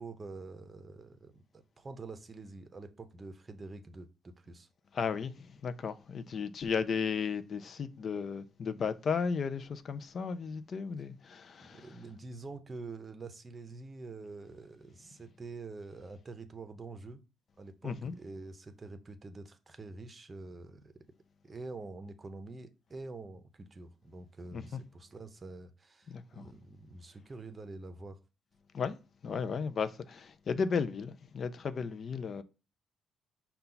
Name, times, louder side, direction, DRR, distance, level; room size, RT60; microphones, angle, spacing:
voice 1, 0.0-4.7 11.6-17.2 17.6-21.0 21.4-28.2, right 3 dB, 30° right, 0.7 m, -46 dB
voice 2, 4.9-11.9 17.8-18.1 24.5-24.8 26.1-26.5 28.7-29.0 29.2-32.4, left 6 dB, 50° left, 0.4 m, -34 dB
5.4 x 2.3 x 3.9 m
cardioid pair, 90°, 0 cm